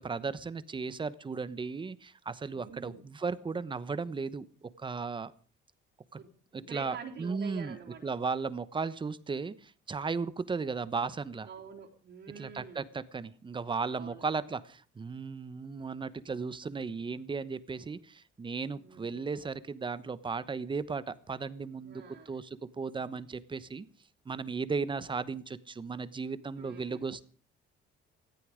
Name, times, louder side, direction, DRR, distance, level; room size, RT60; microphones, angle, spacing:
voice 1, 0.0-5.3 6.5-11.5 12.4-23.8 24.2-27.3, right 4 dB, 25° right, 15 dB, 1.1 m, -36 dB
voice 2, 2.5-3.0 6.2-8.0 11.4-12.9 13.9-14.2 18.7-19.3 21.8-22.3 26.6-27.2, right 6 dB, 60° right, -1 dB, 3.8 m, -47 dB
18.5 x 13.5 x 5.1 m, 0.41 s
cardioid pair, 120°, 21 cm